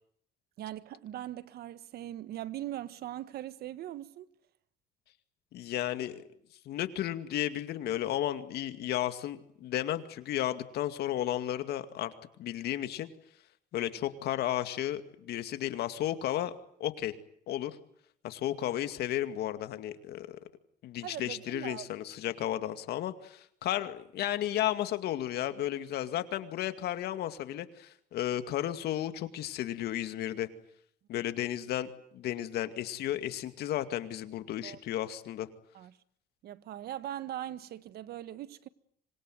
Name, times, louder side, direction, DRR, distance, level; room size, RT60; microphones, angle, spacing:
voice 1, 0.6-4.3 21.0-21.9 34.6-34.8 35.7-36.0 36.4-38.7, right 12 dB, 70° right, 1.5 m, -40 dB
voice 2, 5.5-6.2 6.7-12.1 12.4-13.1 13.7-16.5 16.8-17.1 17.5-17.8 18.2-20.4 20.8-30.5 31.1-35.5, left 12 dB, 75° left, 2.3 m, -33 dB
26.0 x 21.5 x 9.4 m
cardioid pair, 110°, 17 cm